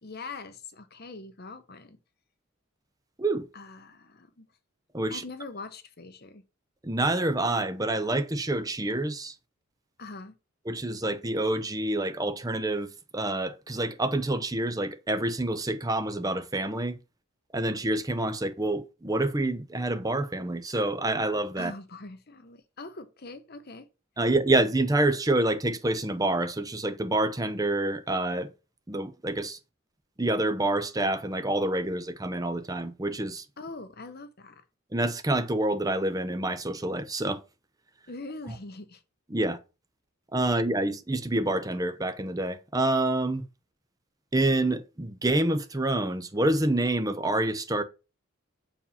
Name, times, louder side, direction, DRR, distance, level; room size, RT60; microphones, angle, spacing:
voice 1, 0.0-2.0 3.5-4.5 5.1-6.4 10.0-10.3 21.6-23.9 33.6-34.6 38.1-39.0, left 3 dB, 45° left, 1.0 m, -42 dB
voice 2, 6.8-9.3 10.7-17.0 17.5-21.7 24.2-28.5 28.9-29.6 30.2-33.4 34.9-37.4 39.3-39.6 40.3-43.5 44.3-47.8, right 2 dB, 15° right, 0.6 m, -27 dB
7.1 x 4.7 x 5.6 m
head